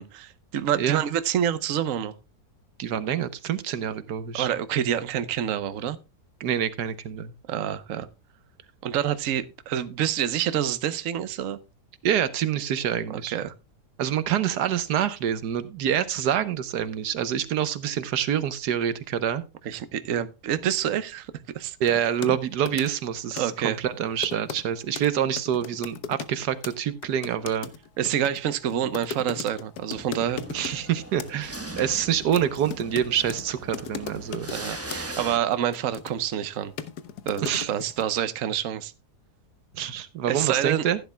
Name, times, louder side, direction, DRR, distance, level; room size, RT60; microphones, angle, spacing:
voice 1, 0.0-2.1 4.3-6.0 7.5-8.1 8.8-11.6 13.1-13.5 19.6-21.8 23.3-23.8 28.0-30.4 34.5-36.7 37.3-38.9 40.3-40.8, right 10 dB, 60° right, 1.2 m, -27 dB
voice 2, 2.8-4.5 6.4-7.3 12.0-13.4 14.0-19.4 21.8-27.7 30.5-34.5 37.4-37.7 39.7-41.0, right 9 dB, 85° right, 1.5 m, -26 dB
sound 1, 21.9-22.4 22.7-23.1 23.4-23.6 24.2-24.6 25.0-25.1 25.3-26.4 26.6-26.8 27.0-30.8 31.2-31.5 31.8-33.4 33.7-34.6 34.9-35.0 35.5-36.4 36.8-38.0, left 7 dB, 75° left, 1.5 m, -37 dB
sound 2, 29.9-35.4, right 1 dB, 10° right, 1.0 m, -40 dB
15.5 x 10.5 x 2.2 m
omnidirectional pair, 1.7 m